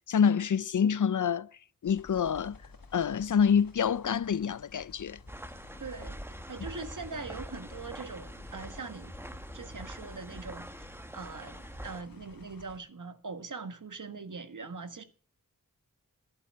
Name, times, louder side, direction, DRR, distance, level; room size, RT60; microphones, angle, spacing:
voice 1, 0.1-1.5 1.8-2.6 2.9-5.2, left 7 dB, 65° left, 0.5 m, -26 dB
sound 1, 1.8-12.8, left 4 dB, 90° left, 1.6 m, -53 dB
sound 2, 5.3-12.0, right 1 dB, 5° right, 1.1 m, -44 dB
voice 2, 5.8-6.2 6.5-9.1 9.5-15.0, right 4 dB, 65° right, 1.5 m, -42 dB
11.5 x 8.7 x 5.8 m
cardioid pair, 45°, 33 cm